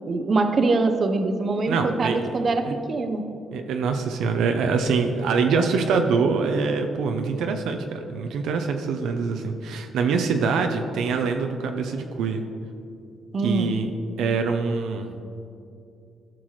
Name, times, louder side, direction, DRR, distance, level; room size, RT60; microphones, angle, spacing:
voice 1, 0.1-3.2 13.3-13.8, right 3 dB, 45° right, 7 dB, 0.7 m, -23 dB
voice 2, 1.7-2.7 3.5-12.4 13.4-13.9 14.2-15.1, right 5 dB, 80° right, 5 dB, 0.6 m, -24 dB
14.0 x 6.0 x 3.2 m, 2.5 s
cardioid pair, 90°, 0 cm